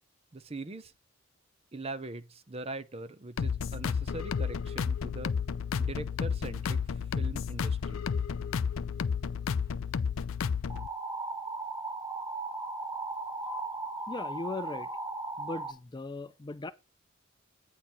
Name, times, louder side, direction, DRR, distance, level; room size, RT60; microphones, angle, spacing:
voice 1, 0.3-0.9 1.7-5.3 5.8-8.0, right 2 dB, 30° right, 0.6 m, -41 dB
sound 1, 3.4-10.9, left 6 dB, 90° left, 0.4 m, -31 dB
sound 2, 10.7-15.7, right 2 dB, 15° right, 1.2 m, -37 dB
voice 2, 14.1-14.9 15.4-16.7, left 3 dB, 20° left, 0.4 m, -38 dB
8.8 x 4.6 x 5.2 m
head